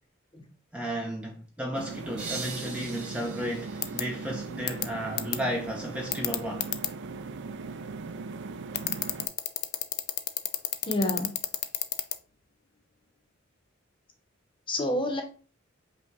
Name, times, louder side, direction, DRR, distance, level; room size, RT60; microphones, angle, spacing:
voice 1, 0.7-6.7, equal, 5° right, 0.5 m, -34 dB
sound 1, 1.7-9.3, right 4 dB, 60° right, 0.4 m, -39 dB
sound 2, 2.2-4.9, right 4 dB, 40° right, 1.4 m, -42 dB
sound 3, 3.8-4.0 4.7-4.8 5.2-5.4 6.1-6.9 8.7-12.2, left 13 dB, 55° left, 0.4 m, -28 dB
voice 2, 10.8-11.4 14.7-15.2, left 1 dB, 25° left, 0.9 m, -28 dB
5.3 x 2.3 x 3.8 m
head